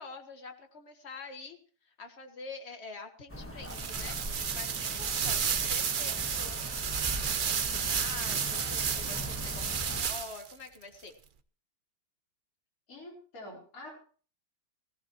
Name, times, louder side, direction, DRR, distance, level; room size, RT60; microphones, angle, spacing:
voice 1, 0.0-1.6 1.8-7.0 7.3-11.1, left 4 dB, 40° left, 5 dB, 1.9 m, -46 dB
sound 1, 3.3-10.0, equal, 10° left, 1.5 m, -41 dB
sound 2, 3.6-10.5, right 7 dB, 55° right, 0.5 m, -32 dB
voice 2, 12.9-13.9, left 1 dB, 55° left, -2 dB, 4.8 m, -47 dB
17.5 x 16.5 x 3.1 m, 0.41 s
omnidirectional pair, 1.8 m